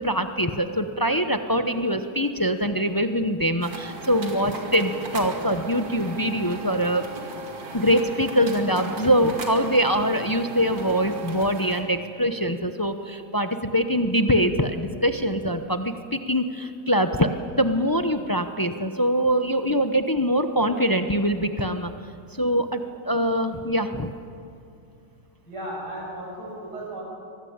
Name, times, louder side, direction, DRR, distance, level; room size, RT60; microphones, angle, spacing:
voice 1, 0.0-7.1 7.7-17.3 17.6-21.9 22.3-24.1, equal, 25° left, 8 dB, 0.4 m, -23 dB
sound 1, 3.6-11.8, right 3 dB, 90° right, 3.2 m, -37 dB
voice 2, 25.5-27.0, right 1 dB, 60° right, -3 dB, 7.5 m, -35 dB
23.5 x 19.0 x 8.8 m, 2.5 s
omnidirectional pair, 2.0 m